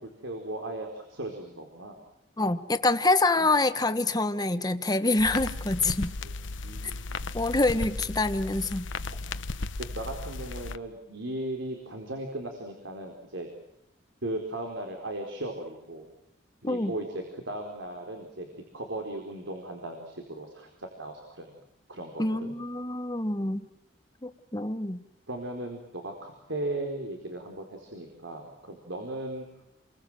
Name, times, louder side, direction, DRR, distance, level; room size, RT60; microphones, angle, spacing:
voice 1, 0.0-2.0 3.4-3.5 6.2-6.3 6.6-7.3 9.1-9.2 9.9-13.5 14.2-16.1 16.6-21.5 21.9-22.5 23.4-23.6 25.3-29.5, right 1 dB, 90° right, 3 dB, 4.4 m, -37 dB
voice 2, 2.4-6.1 7.3-8.9 16.6-16.9 22.2-23.7 24.2-25.0, left 2 dB, 20° left, 10 dB, 1.4 m, -26 dB
sound 1, 5.2-10.8, left 3 dB, 85° left, 1.1 m, -35 dB
29.5 x 23.5 x 7.6 m, 0.79 s
head